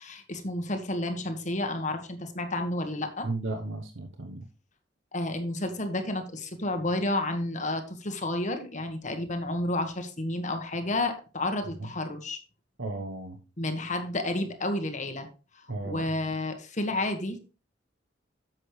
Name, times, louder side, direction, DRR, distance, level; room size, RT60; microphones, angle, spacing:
voice 1, 0.0-3.3 5.1-12.4 13.6-15.3 15.8-17.4, left 1 dB, 40° left, 6 dB, 1.6 m, -31 dB
voice 2, 3.2-4.5 12.8-13.4 15.7-16.0, right 2 dB, 85° right, 4 dB, 1.0 m, -34 dB
11.0 x 7.7 x 3.3 m, 0.33 s
head